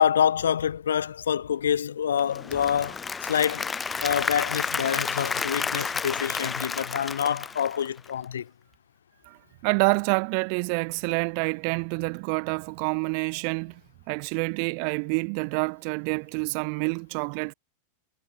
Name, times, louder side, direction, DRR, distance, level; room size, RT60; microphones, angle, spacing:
voice 1, 0.0-3.7 4.0-8.5, left 8 dB, 65° left, 2.4 m, -26 dB
Applause / Crowd, 2.2-8.2, left 5 dB, 15° left, 3.3 m, -31 dB
voice 2, 9.6-13.8 14.1-17.5, right 40 dB or more, 45° right, 3.2 m, -27 dB
figure-of-eight pair, 90°, 0 cm